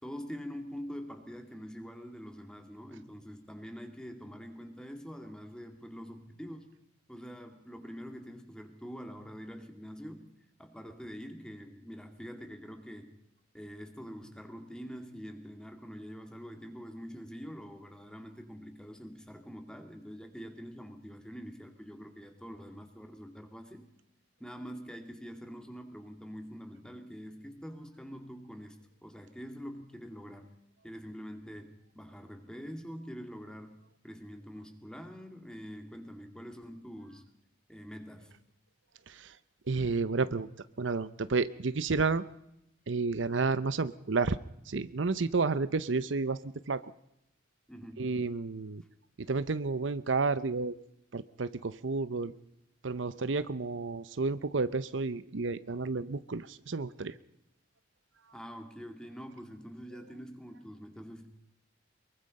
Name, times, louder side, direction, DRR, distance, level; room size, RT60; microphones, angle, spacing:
voice 1, 0.0-6.7 7.1-10.3 10.6-13.2 13.5-23.9 24.4-30.6 30.8-33.8 34.0-37.2 37.7-38.3 47.7-48.2 58.3-61.3, equal, 5° left, 5 dB, 2.4 m, -45 dB
voice 2, 39.7-40.5 40.8-42.2 42.9-44.4 44.7-46.4 46.7-46.9 48.0-48.8 49.3-50.7 51.1-52.3 52.8-57.1, right 4 dB, 75° right, 14 dB, 0.8 m, -31 dB
23.5 x 22.5 x 5.4 m, 0.82 s
head